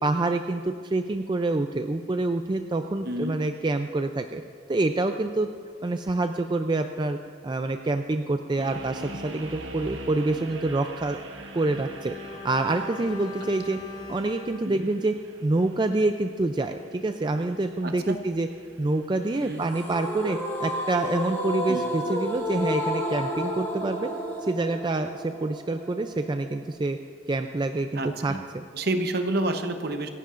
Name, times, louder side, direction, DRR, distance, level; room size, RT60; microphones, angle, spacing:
voice 1, 0.0-4.4 4.7-5.5 5.8-7.2 7.4-11.2 11.5-13.8 14.1-15.1 15.4-18.5 18.8-24.1 24.4-27.0 27.3-28.6, right 2 dB, 25° right, 6 dB, 0.4 m, -27 dB
voice 2, 3.0-3.4 14.6-14.9 17.8-18.2 19.4-19.6 21.7-21.8 27.9-28.4 28.7-30.1, right 2 dB, 55° right, 7 dB, 0.9 m, -29 dB
sound 1, 8.6-19.6, right 1 dB, 75° right, 1.3 m, -44 dB
Bowed string instrument, 11.5-15.9 16.2-16.3, left 4 dB, 45° left, 1.3 m, -42 dB
sound 2, 19.7-26.7, equal, 10° left, 1.5 m, -31 dB
26.5 x 11.0 x 2.5 m, 2.1 s
head